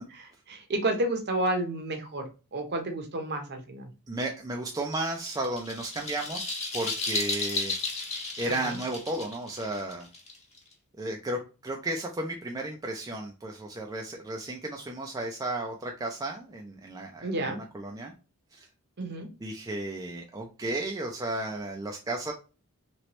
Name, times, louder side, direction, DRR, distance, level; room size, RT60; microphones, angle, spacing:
voice 1, 0.0-3.9 8.5-8.8 17.2-17.6 19.0-19.3, right 1 dB, 50° right, 5 dB, 0.8 m, -31 dB
voice 2, 4.1-7.7 8.4-10.1 11.0-18.1 18.5-18.7 19.4-22.3, right 2 dB, 15° right, 1 dB, 0.4 m, -34 dB
sound 1, 4.9-10.7, left 3 dB, 30° left, 1.0 m, -33 dB
3.0 x 3.0 x 3.0 m, 0.32 s
head